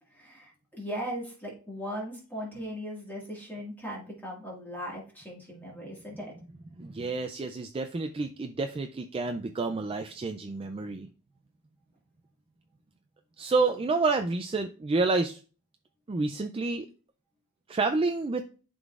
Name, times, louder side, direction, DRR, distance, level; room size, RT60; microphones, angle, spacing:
voice 1, 0.1-6.3, equal, 10° left, -3 dB, 1.8 m, -38 dB
voice 2, 6.8-11.1 13.4-15.4 16.1-16.9 17.7-18.4, right 3 dB, 25° right, 7 dB, 0.3 m, -29 dB
11.5 x 3.8 x 2.4 m, 0.36 s
head